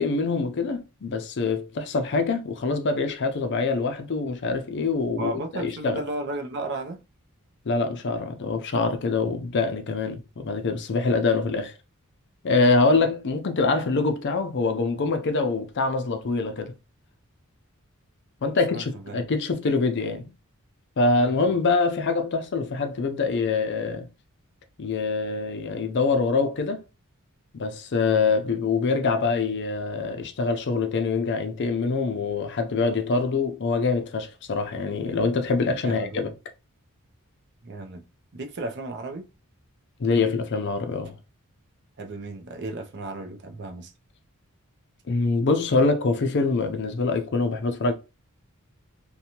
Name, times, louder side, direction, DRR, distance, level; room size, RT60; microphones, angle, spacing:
voice 1, 0.0-6.0 7.7-11.7 12.4-16.7 18.4-20.3 21.0-24.1 24.8-26.8 27.5-36.3 40.0-41.2 45.1-47.9, left 4 dB, 50° left, 0.5 m, -24 dB
voice 2, 5.2-7.0 18.6-19.2 21.2-21.3 35.7-36.2 37.6-38.0 38.3-39.3 42.0-43.9, right 2 dB, 50° right, 0.5 m, -34 dB
2.7 x 2.2 x 2.8 m
head